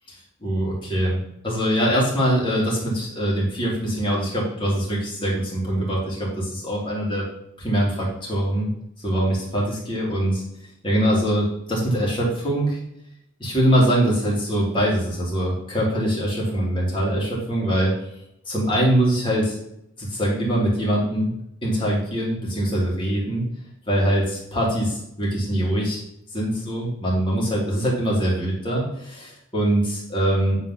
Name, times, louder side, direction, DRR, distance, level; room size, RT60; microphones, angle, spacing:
voice 1, 0.4-1.2 1.4-7.2 7.6-8.7 9.0-10.4 10.8-12.8 13.4-17.9 18.5-19.6 20.0-21.3 21.6-23.5 23.9-26.0 26.3-30.6, right 1 dB, 25° left, -4 dB, 2.5 m, -23 dB
8.3 x 4.0 x 5.7 m, 0.79 s
head